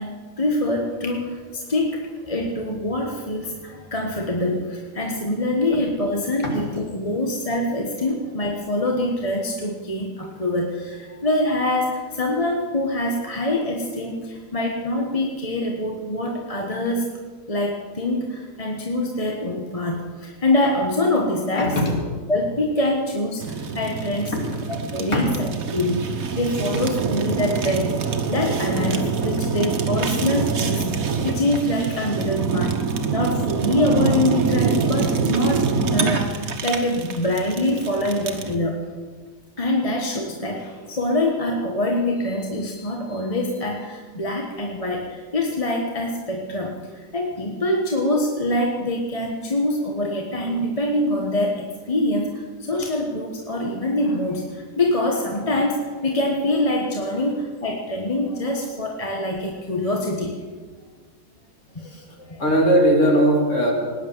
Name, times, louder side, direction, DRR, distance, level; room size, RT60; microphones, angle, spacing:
voice 1, 0.0-17.1 17.5-21.9 22.3-24.4 24.7-32.8 33.1-38.8 39.6-60.4 61.7-61.9 62.2-62.4, left 1 dB, 25° left, 1 dB, 1.3 m, -25 dB
voice 2, 21.5-21.9 25.1-25.2 28.9-29.0 32.6-32.7 61.9-62.0 62.4-63.7, equal, 60° left, 0 dB, 3.4 m, -19 dB
Fire, 23.4-38.5, right 5 dB, 80° right, 1.7 m, -25 dB
19.0 x 9.8 x 7.3 m, 1.5 s
omnidirectional pair, 1.5 m